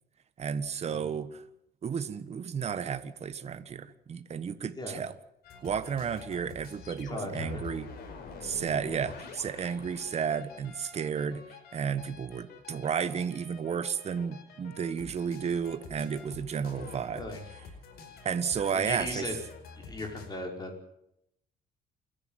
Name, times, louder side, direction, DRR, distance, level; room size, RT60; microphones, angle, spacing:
voice 1, 0.4-1.4 1.8-5.1 5.6-7.9 8.4-11.4 11.7-17.2 18.2-19.3, right 7 dB, 40° right, 12 dB, 1.4 m, -32 dB
sound 1, 5.4-20.3, left 5 dB, 70° left, 5.2 m, -47 dB
voice 2, 6.1-6.4 7.0-7.6 17.1-17.4 18.7-19.3 19.8-20.8, left 2 dB, 25° left, 2 dB, 5.4 m, -37 dB
28.5 x 10.5 x 9.2 m, 0.77 s
cardioid pair, 110°, 17 cm